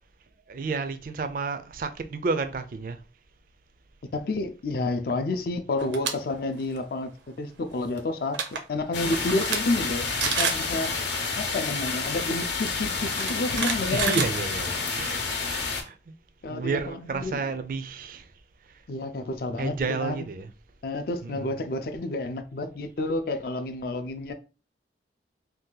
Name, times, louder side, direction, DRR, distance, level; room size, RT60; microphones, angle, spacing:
voice 1, 0.5-3.0 13.9-16.0 16.5-18.3 19.6-20.5 21.2-21.6, right 4 dB, 50° right, 0.4 m, -31 dB
voice 2, 4.1-11.0 11.4-14.2 16.4-17.4 18.9-20.3 20.8-24.3, left 2 dB, 55° left, 0.4 m, -30 dB
sound 1, 5.8-6.1 6.5-6.8 8.0-8.1 8.3-8.6 9.1-9.6 9.9-10.0 10.2-10.7 11.9-12.0 13.0-14.9, right 6 dB, 85° right, 0.6 m, -28 dB
sound 2, 8.9-15.8, left 4 dB, 80° left, 0.8 m, -29 dB
2.7 x 2.3 x 3.7 m
head